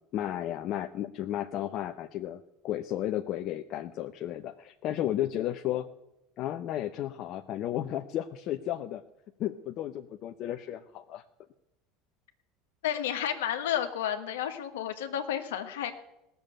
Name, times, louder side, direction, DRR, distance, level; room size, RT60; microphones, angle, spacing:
voice 1, 0.1-5.9 6.4-9.0 9.4-11.2, left 12 dB, 55° left, 6 dB, 0.7 m, -33 dB
voice 2, 12.8-15.9, left 10 dB, 75° left, 7 dB, 1.5 m, -31 dB
17.5 x 7.0 x 8.7 m, 0.89 s
hypercardioid pair, 75°, 0 cm